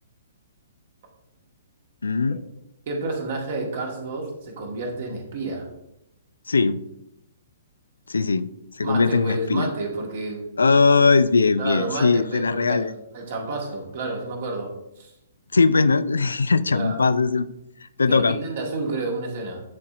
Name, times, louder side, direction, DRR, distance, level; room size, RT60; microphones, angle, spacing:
voice 1, 2.0-2.4 6.5-6.8 8.1-8.5 8.8-9.7 10.6-12.9 15.5-17.5 18.0-18.4, left 4 dB, 70° left, 13 dB, 0.3 m, -20 dB
voice 2, 2.9-5.7 8.8-10.5 11.6-15.1 16.7-17.0 18.1-19.6, right 3 dB, 50° right, 1 dB, 1.7 m, -30 dB
10.5 x 4.1 x 2.5 m, 0.85 s
figure-of-eight pair, 120°, 0 cm